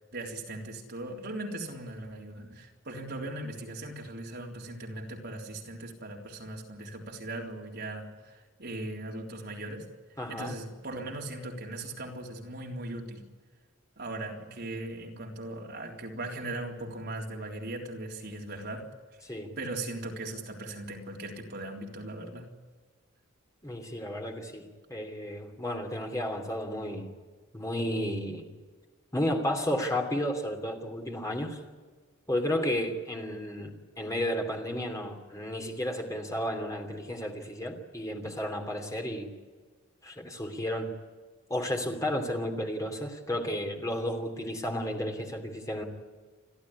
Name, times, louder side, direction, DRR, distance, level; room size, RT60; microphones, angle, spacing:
voice 1, 0.1-9.9 10.3-13.2 14.0-18.9 19.6-22.5, right 2 dB, 50° right, 0 dB, 3.6 m, -39 dB
voice 2, 10.2-10.5 19.2-19.5 23.6-27.1 27.5-28.5 29.1-31.6 32.3-39.3 40.0-40.9 41.5-45.8, left 1 dB, 15° left, 3 dB, 3.0 m, -32 dB
30.0 x 12.5 x 9.9 m, 1.4 s
head